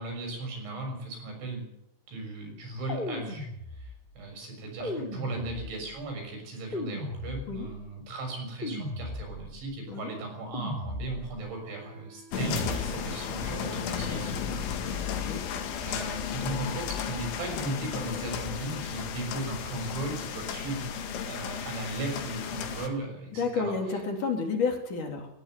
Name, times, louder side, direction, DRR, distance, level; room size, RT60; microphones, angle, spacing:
voice 1, 0.0-1.7 2.1-3.5 3.7-15.2 15.8-20.9 21.3-24.0, right 2 dB, 75° right, 3 dB, 8.8 m, -37 dB
sound 1, 2.9-4.1 4.8-6.0 6.7-7.8 8.6-9.6 10.5-11.5 12.3-13.2, left 1 dB, 10° left, 3.4 m, -37 dB
Wind instrument woodwind instrument, 11.4-17.6, right 4 dB, 30° right, 9.0 m, -53 dB
sound 2, 12.3-22.9, left 7 dB, 85° left, 4.5 m, -34 dB
voice 2, 15.1-15.4 23.4-25.3, left 4 dB, 45° left, 3 dB, 4.3 m, -30 dB
20.0 x 15.0 x 9.3 m, 0.80 s
omnidirectional pair, 5.3 m